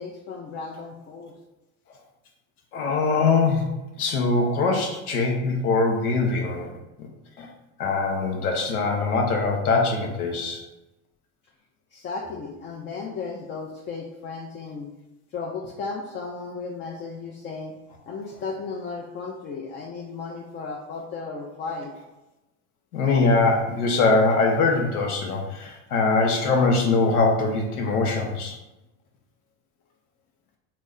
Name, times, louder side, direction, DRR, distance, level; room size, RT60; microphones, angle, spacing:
voice 1, 0.0-1.3 11.9-14.9 15.3-17.7 18.1-21.9, left 4 dB, 30° left, 0 dB, 0.4 m, -35 dB
voice 2, 2.7-6.7 7.0-7.1 7.4-7.5 7.8-10.6 22.9-28.6, left 3 dB, 90° left, 1 dB, 0.7 m, -22 dB
3.0 x 2.1 x 3.6 m, 0.99 s
hypercardioid pair, 80°, 43 cm